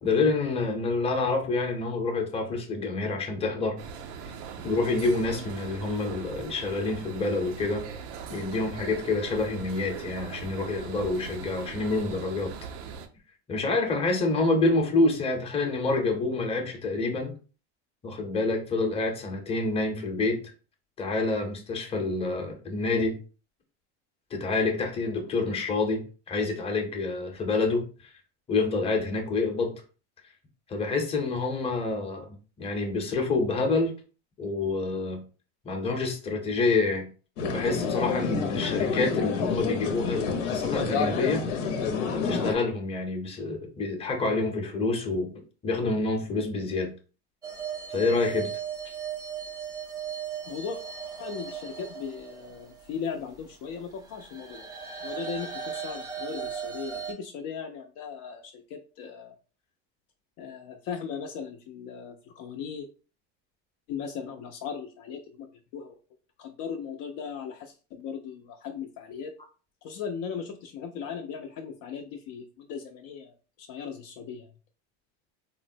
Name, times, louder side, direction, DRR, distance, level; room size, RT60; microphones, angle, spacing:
voice 1, 0.0-3.7 4.6-7.8 8.3-12.5 13.5-17.3 18.0-20.4 21.0-23.1 24.3-28.1 28.5-29.7 30.7-33.9 34.4-35.2 35.6-37.1 37.4-41.4 42.1-45.3 45.6-46.9 47.9-48.5, left 3 dB, 15° left, 3 dB, 0.7 m, -27 dB
sound 1, 3.8-13.1, right 6 dB, 85° right, 0.6 m, -40 dB
sound 2, 37.4-42.5, left 5 dB, 85° left, 0.8 m, -28 dB
sound 3, 47.4-53.1 54.0-57.1, right 7 dB, 10° right, 0.3 m, -37 dB
voice 2, 50.5-50.8 51.2-54.8 55.0-59.3 60.4-62.9 63.9-65.9 66.4-69.3 69.8-74.5, left 6 dB, 55° left, 4 dB, 0.5 m, -38 dB
3.6 x 2.1 x 2.6 m, 0.36 s
supercardioid pair, 120°, 36 cm